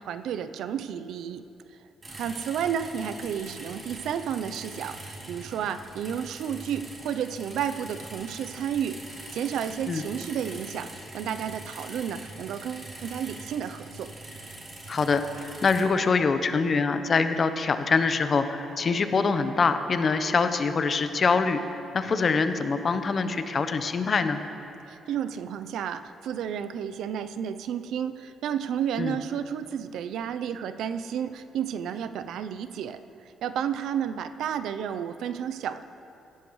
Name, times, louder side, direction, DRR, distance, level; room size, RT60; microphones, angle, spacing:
voice 1, 0.0-1.4 2.1-9.0 9.3-14.1 24.9-33.0 33.4-35.8, right 8 dB, 80° right, 11 dB, 0.5 m, -32 dB
sound 1, 2.0-15.8, right 1 dB, 35° right, 3.6 m, -43 dB
voice 2, 14.9-24.4 29.0-29.2, left 4 dB, 45° left, 9 dB, 0.8 m, -24 dB
17.0 x 13.5 x 3.1 m, 2.8 s
cardioid pair, 90°, 0 cm